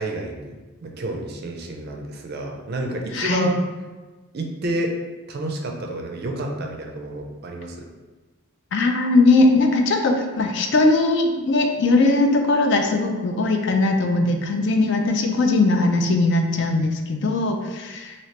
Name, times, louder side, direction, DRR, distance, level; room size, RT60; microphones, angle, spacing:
voice 1, 0.0-3.6 4.3-5.0 5.3-7.9, right 1 dB, 45° right, 2 dB, 0.4 m, -29 dB
voice 2, 3.1-3.5 8.7-18.1, left 2 dB, 55° left, 4 dB, 0.4 m, -19 dB
3.1 x 2.8 x 2.8 m, 1.2 s
head